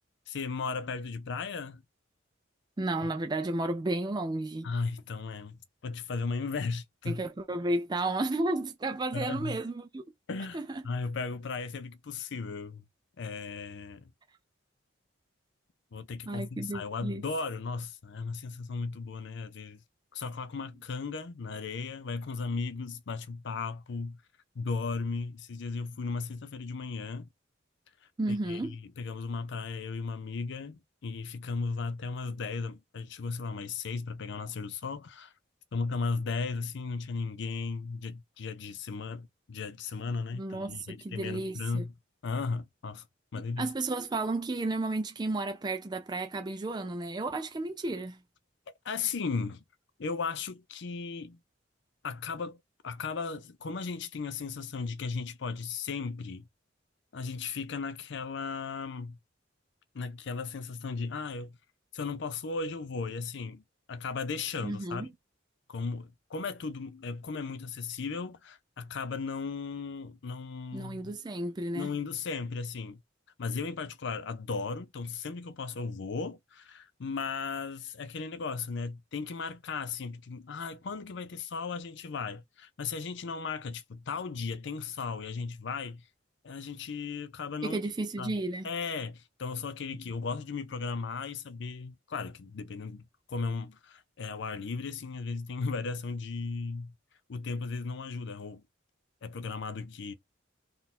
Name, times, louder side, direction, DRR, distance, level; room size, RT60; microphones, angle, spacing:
voice 1, 0.3-1.8 4.6-7.2 9.1-9.6 10.3-12.8 13.2-14.1 15.9-19.8 20.1-24.2 24.6-27.3 28.3-35.3 35.7-41.9 42.2-43.1 43.3-43.7 48.8-49.6 50.0-51.4 52.0-56.5 57.1-59.2 59.9-61.6 61.9-63.6 63.9-65.1 65.7-71.1 71.7-73.0 73.4-86.1 86.4-87.8 88.2-88.4 88.6-96.9 97.3-98.6 99.2-100.1, left 4 dB, 65° left, 0.5 m, -36 dB
voice 2, 2.8-4.7 7.1-10.0 10.5-10.8 16.3-17.2 28.2-28.8 40.3-41.8 43.3-48.2 64.6-65.1 70.7-71.9 87.6-88.7, right 2 dB, 20° right, 0.4 m, -33 dB
3.7 x 2.5 x 4.1 m
head